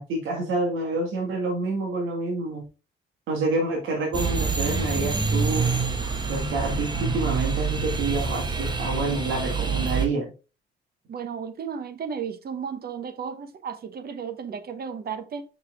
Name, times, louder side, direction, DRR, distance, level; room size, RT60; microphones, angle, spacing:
voice 1, 0.0-2.6 3.3-5.8 6.3-10.3, right 2 dB, 80° right, 1.9 m, -28 dB
sound 1, 4.1-10.1, right 4 dB, 20° right, 1.2 m, -26 dB
voice 2, 11.1-15.4, right 7 dB, 50° right, 1.0 m, -34 dB
5.6 x 4.8 x 3.6 m
cardioid pair, 90°, 20 cm